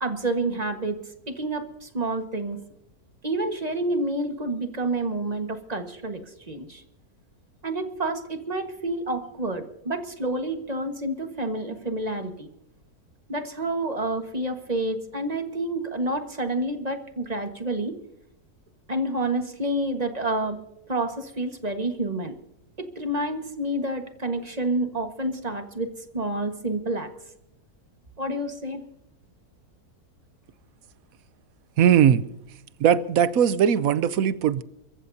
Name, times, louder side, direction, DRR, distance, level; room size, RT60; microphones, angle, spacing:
voice 1, 0.0-1.0 1.3-2.6 3.2-6.8 7.6-12.5 13.3-17.9 18.9-20.6 20.9-22.3 22.8-27.1 28.2-28.8, right 2 dB, 25° right, 1.6 m, -29 dB
voice 2, 31.8-32.3 32.8-34.6, right 9 dB, 70° right, 1.1 m, -19 dB
29.5 x 14.5 x 2.8 m
omnidirectional pair, 1.6 m